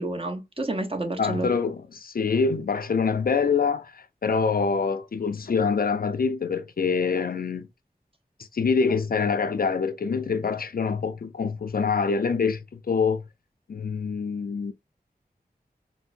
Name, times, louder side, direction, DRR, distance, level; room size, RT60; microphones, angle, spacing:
voice 1, 0.0-1.5, right 2 dB, 35° right, 0.8 m, -29 dB
voice 2, 1.2-7.7 8.5-13.2 13.7-14.7, left 5 dB, 65° left, 0.4 m, -25 dB
4.3 x 2.0 x 2.5 m
wide cardioid pair, 50°, 17 cm